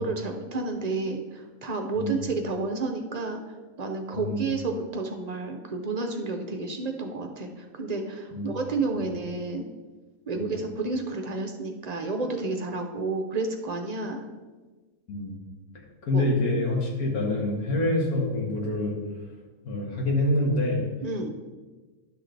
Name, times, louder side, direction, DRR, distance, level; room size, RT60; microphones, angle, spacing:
voice 1, 0.0-3.4 3.8-9.6 10.3-14.2 16.1-16.2 21.0-21.3, right 3 dB, 40° right, 4 dB, 0.6 m, -30 dB
voice 2, 4.1-4.4 8.3-8.5 8.9-9.0 10.3-10.6 15.1-15.3 16.0-19.0 19.6-20.8, left 1 dB, 85° left, 0 dB, 2.0 m, -26 dB
11.0 x 6.1 x 3.4 m, 1.3 s
omnidirectional pair, 1.5 m